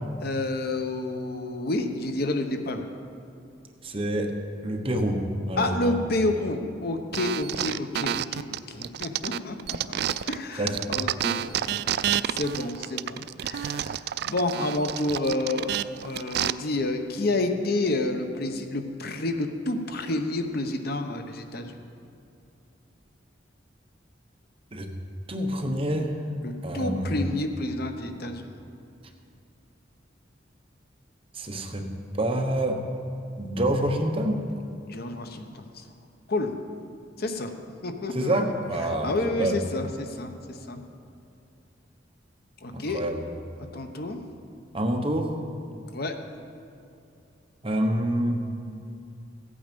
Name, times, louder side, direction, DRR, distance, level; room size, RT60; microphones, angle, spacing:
voice 1, 0.2-2.8 5.6-10.0 10.3-13.9 14.2-15.7 16.0-21.8 26.4-28.5 34.9-35.9 36.3-36.5 37.2-37.5 37.8-38.3 38.8-40.8 42.6-43.0 43.7-44.2 45.9-46.1, left 2 dB, 55° left, 6 dB, 0.9 m, -29 dB
voice 2, 3.8-4.3 4.6-5.9 10.6-10.8 24.7-24.9 25.3-26.1 26.6-27.3 31.3-31.9 32.2-32.8 33.4-34.4 38.1-39.1 39.4-39.6 42.7-43.2 44.7-45.3 47.6-48.4, right 1 dB, 30° right, 3 dB, 1.1 m, -27 dB
sound 1, 7.1-10.4 10.7-16.5, right 10 dB, 60° right, 0.3 m, -29 dB
15.5 x 8.7 x 5.3 m, 2.6 s
head